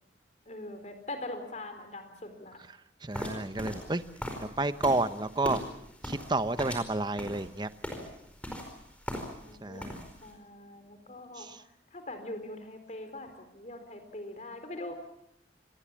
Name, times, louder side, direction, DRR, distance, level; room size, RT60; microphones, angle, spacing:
voice 1, 0.5-2.6 9.4-11.5 11.9-14.9, left 1 dB, 40° left, 7 dB, 4.1 m, -42 dB
voice 2, 3.0-4.0 4.4-5.6 6.0-7.7 9.6-10.0 11.4-11.6, right 2 dB, 25° right, 12 dB, 0.9 m, -30 dB
sound 1, 3.1-9.5 9.8-10.3, equal, 5° left, 4.7 m, -39 dB
27.0 x 20.5 x 7.4 m, 0.78 s
head